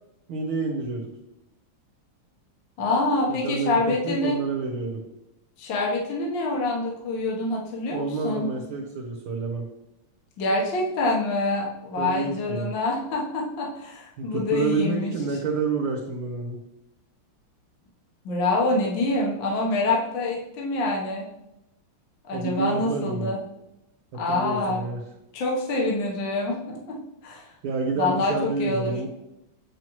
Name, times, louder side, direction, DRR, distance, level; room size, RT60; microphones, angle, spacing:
voice 1, 0.3-1.1 3.3-5.0 7.9-9.7 12.0-12.7 14.2-16.6 22.3-23.3 24.1-25.0 27.6-29.1, right 4 dB, 70° right, -2 dB, 1.8 m, -29 dB
voice 2, 2.8-4.4 5.6-8.5 10.4-15.1 18.2-21.3 22.3-23.4 24.2-24.8 25.3-27.0 27.2-27.5 27.9-28.9, left 2 dB, 65° left, -2 dB, 1.8 m, -26 dB
7.4 x 6.1 x 3.0 m, 0.89 s
omnidirectional pair, 2.4 m